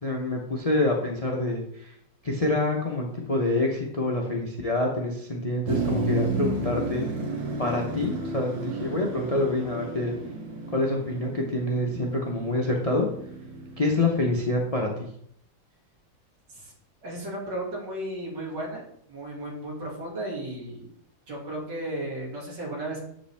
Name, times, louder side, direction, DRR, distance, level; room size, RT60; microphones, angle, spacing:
voice 1, 0.0-1.9 2.2-7.1 7.6-10.2 10.7-13.1 13.8-15.1, left 2 dB, 35° left, 0 dB, 0.6 m, -26 dB
Motor vehicle (road), 5.7-14.6, right 3 dB, 90° right, 1.8 m, -32 dB
voice 2, 17.0-18.8 19.1-20.9 21.3-23.0, right 1 dB, 70° right, -3 dB, 2.9 m, -34 dB
7.9 x 5.2 x 3.5 m, 0.68 s
omnidirectional pair, 2.0 m